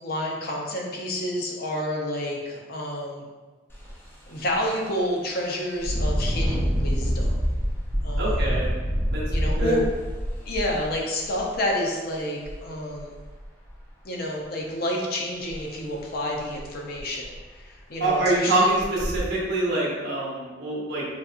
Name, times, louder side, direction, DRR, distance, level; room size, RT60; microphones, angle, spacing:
voice 1, 0.0-3.2 4.3-7.4 8.0-8.6 9.3-9.8 10.5-13.2 14.0-18.7, left 1 dB, 55° left, -1 dB, 0.6 m, -29 dB
Engine, 3.7-3.9 4.4-4.5 5.8-11.5 12.4-12.5 13.0-13.7 15.5-15.6 16.0-16.1 16.6-16.7 17.0-17.5 18.0-18.2 18.8-19.2, equal, 10° left, 0.5 m, -26 dB
voice 2, 8.2-8.7 9.1-9.2 9.6-9.8 18.0-21.0, right 2 dB, 60° right, -5 dB, 0.8 m, -25 dB
4.0 x 2.5 x 2.4 m, 1.3 s
head